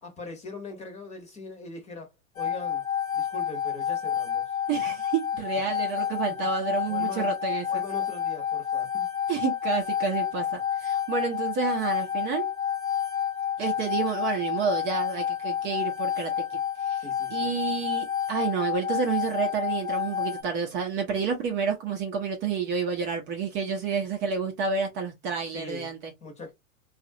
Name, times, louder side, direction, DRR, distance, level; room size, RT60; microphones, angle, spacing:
voice 1, 0.0-2.8 3.1-4.6 6.4-6.5 6.9-7.4 7.7-9.1 17.0-17.5 25.5-25.9 26.2-26.5, left 2 dB, 15° left, 1.0 m, -41 dB
sound 1, 2.4-20.4, left 9 dB, 70° left, 1.1 m, -29 dB
voice 2, 4.7-7.8 9.3-12.5 13.6-16.4 16.8-17.0 17.3-26.1, right 6 dB, 25° right, 0.7 m, -29 dB
3.8 x 2.4 x 2.6 m
hypercardioid pair, 120°, 42 cm